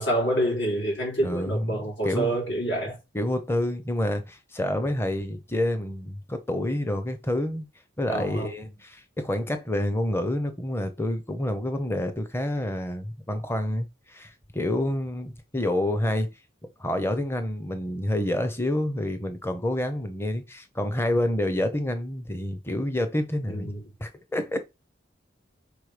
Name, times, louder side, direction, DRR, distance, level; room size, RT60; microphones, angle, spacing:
voice 1, 0.0-3.0 8.1-8.5 23.5-23.8, right 1 dB, 70° left, 3.9 m, -27 dB
voice 2, 1.2-2.4 3.1-7.7 8.0-16.3 16.8-23.7 24.0-24.6, left 1 dB, 10° left, 0.7 m, -28 dB
4.8 x 4.2 x 5.0 m
head